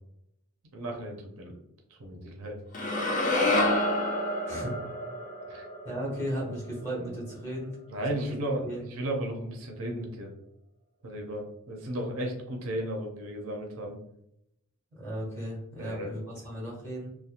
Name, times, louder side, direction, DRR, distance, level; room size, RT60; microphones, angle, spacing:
voice 1, 0.7-1.6 2.0-2.6 5.5-5.7 7.9-10.3 11.0-14.0 15.8-16.2, right 1 dB, 65° right, 2 dB, 0.5 m, -34 dB
sound 1, 2.7-7.0, left 1 dB, 35° left, 0.4 m, -29 dB
voice 2, 4.5-4.8 5.8-8.3 8.6-8.8 14.9-17.1, equal, 15° left, -6 dB, 1.2 m, -36 dB
2.7 x 2.1 x 2.4 m, 0.79 s
head